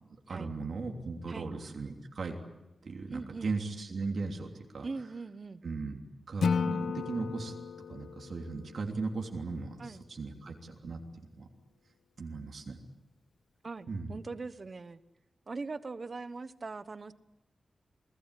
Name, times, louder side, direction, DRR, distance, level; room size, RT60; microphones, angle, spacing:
voice 1, 0.3-2.4 2.8-4.8 5.6-6.0 6.3-7.6 7.9-11.0 11.4-11.5 12.2-12.8 13.9-14.2, right 4 dB, 60° right, 2 dB, 3.2 m, -37 dB
voice 2, 3.1-3.5 4.8-5.6 9.8-10.1 13.6-15.0 15.5-17.1, right 3 dB, 40° right, 13 dB, 1.1 m, -41 dB
Acoustic guitar / Strum, 6.4-9.6, left 5 dB, 85° left, 0.9 m, -34 dB
29.0 x 19.5 x 10.0 m, 1.0 s
wide cardioid pair, 155°, 0 cm